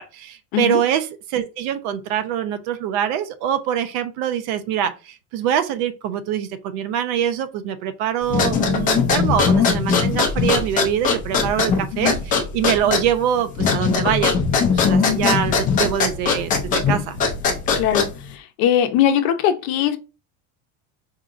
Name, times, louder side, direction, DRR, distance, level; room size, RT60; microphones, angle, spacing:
voice 1, 0.1-14.3 14.7-17.2, right 9 dB, 75° right, 0.7 m, -24 dB
sound 1, 8.3-18.3, left 5 dB, 20° left, 0.3 m, -20 dB
voice 2, 17.8-18.1 18.6-20.0, left 10 dB, 55° left, 0.6 m, -19 dB
4.7 x 2.8 x 2.4 m
cardioid pair, 170°, 44 cm